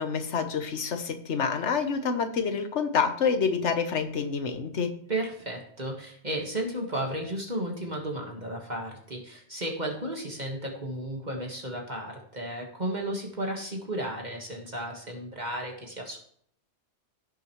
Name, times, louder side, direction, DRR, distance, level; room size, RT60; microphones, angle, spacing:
voice 1, 0.0-4.9, left 6 dB, 85° left, 8 dB, 1.4 m, -27 dB
voice 2, 5.1-16.2, right 1 dB, 40° right, 1 dB, 1.7 m, -34 dB
16.0 x 6.4 x 3.1 m, 0.63 s
omnidirectional pair, 1.2 m